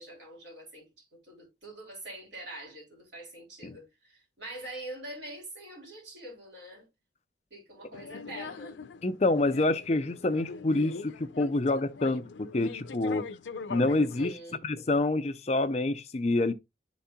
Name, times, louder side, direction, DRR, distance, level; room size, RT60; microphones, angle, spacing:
voice 1, 0.0-6.8 7.5-8.8 14.2-14.6, right 1 dB, 80° right, 3.4 m, -44 dB
sound 1, 7.9-14.4, left 4 dB, 85° left, 0.5 m, -42 dB
voice 2, 9.0-13.3 13.7-16.5, left 2 dB, 35° left, 0.5 m, -27 dB
11.0 x 4.1 x 2.2 m
head